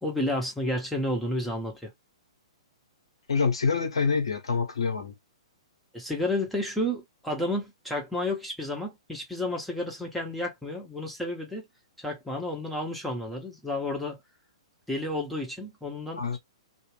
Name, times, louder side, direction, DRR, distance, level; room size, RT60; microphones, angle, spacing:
voice 1, 0.0-1.9 5.9-11.6 12.0-14.2 14.9-16.4, left 1 dB, ahead, 0.9 m, -31 dB
voice 2, 3.3-5.1 16.2-16.4, left 5 dB, 70° left, 1.1 m, -26 dB
2.5 x 2.4 x 3.1 m
figure-of-eight pair, 115°, 3 cm